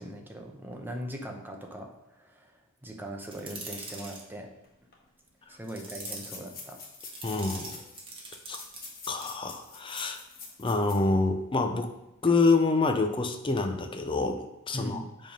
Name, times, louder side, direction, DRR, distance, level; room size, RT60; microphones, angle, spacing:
voice 1, 0.0-4.5 5.5-6.8 14.7-15.1, equal, 10° right, 2 dB, 0.9 m, -40 dB
sound 1, 3.2-4.2 5.6-6.3 7.0-8.9 9.2-9.4, right 3 dB, 25° right, 1.3 m, -42 dB
sound 2, 4.6-4.7 4.9-5.0 5.7-11.1 11.5-11.6 12.1-12.3, left 4 dB, 45° left, 1.5 m, -46 dB
voice 2, 7.2-7.8 8.5-8.6 9.1-10.2 10.6-11.9 12.2-15.0, left 3 dB, 25° left, 6 dB, 0.6 m, -26 dB
7.5 x 3.6 x 5.3 m, 0.88 s
head